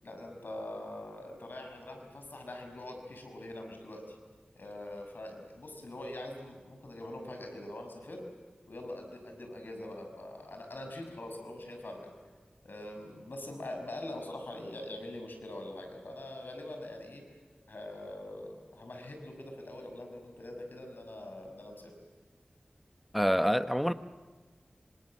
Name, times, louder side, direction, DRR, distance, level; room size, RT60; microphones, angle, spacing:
voice 1, 0.0-4.2 4.5-8.2 8.6-12.1 12.6-17.2 17.7-21.9, left 1 dB, 85° left, 6.1 m, -43 dB
voice 2, 23.1-23.9, equal, ahead, 0.9 m, -26 dB
27.0 x 26.0 x 7.7 m
wide cardioid pair, 55°, 3 cm